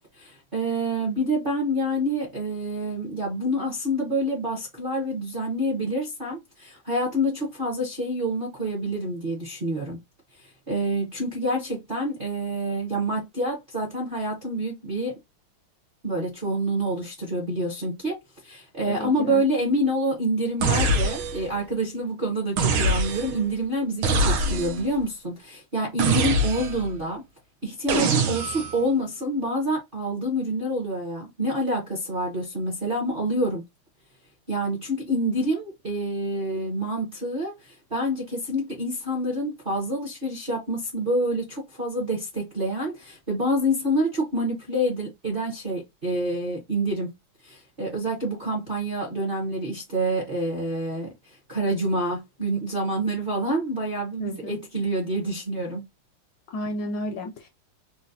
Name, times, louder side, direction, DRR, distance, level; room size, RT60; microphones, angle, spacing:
voice 1, 0.2-10.0 10.4-15.1 16.0-18.2 18.4-27.2 27.6-33.6 34.5-47.1 47.4-55.8, right 1 dB, 45° right, 0.7 m, -27 dB
voice 2, 18.9-19.4 54.2-54.6 56.5-57.5, left 1 dB, 75° left, 1.0 m, -32 dB
sound 1, 20.6-21.5 22.6-23.4 24.0-24.9 26.0-26.9 27.9-28.8, right 2 dB, 80° right, 1.4 m, -24 dB
3.9 x 2.2 x 2.6 m
omnidirectional pair, 2.4 m